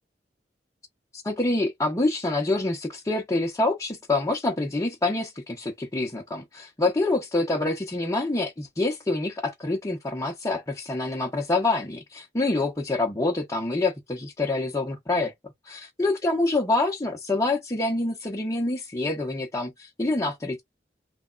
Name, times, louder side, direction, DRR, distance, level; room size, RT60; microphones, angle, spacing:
voice 1, 1.1-15.3 15.6-20.6, left 2 dB, 20° left, 0.8 m, -26 dB
3.4 x 2.2 x 3.8 m
head